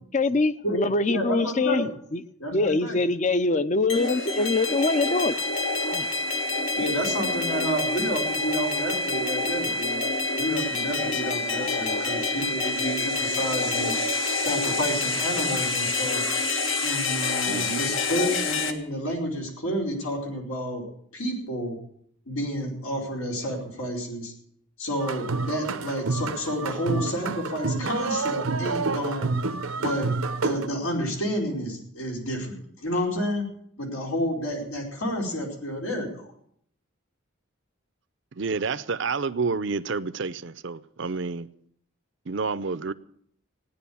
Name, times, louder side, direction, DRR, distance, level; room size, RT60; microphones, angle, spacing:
voice 1, 0.1-2.2 2.5-5.4 5.9-6.1, left 3 dB, 35° left, 0.6 m, -24 dB
voice 2, 0.6-1.9 2.4-3.0 6.8-10.0 10.4-14.0 14.4-16.2 16.8-20.8 21.1-21.8 22.3-24.3 24.8-29.4 29.8-33.5 33.8-36.2, equal, 85° left, 4.7 m, -30 dB
sound 1, 3.9-18.7, left 3 dB, 70° left, 1.5 m, -27 dB
voice 3, 14.0-14.4 17.5-17.8 38.3-41.5 42.3-42.9, right 4 dB, 60° right, 0.6 m, -29 dB
sound 2, 25.0-30.7, right 3 dB, 85° right, 0.8 m, -28 dB
16.5 x 10.0 x 7.0 m
head